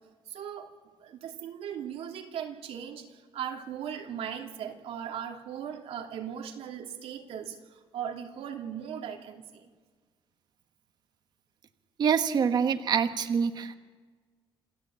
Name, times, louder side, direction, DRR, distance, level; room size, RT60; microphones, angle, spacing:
voice 1, 0.3-0.7 1.0-9.7, right 9 dB, 85° right, 3 dB, 2.7 m, -38 dB
voice 2, 12.0-13.8, right 7 dB, 45° right, 9 dB, 1.2 m, -25 dB
28.0 x 14.5 x 8.8 m, 1.5 s
cardioid pair, 165°, 10 cm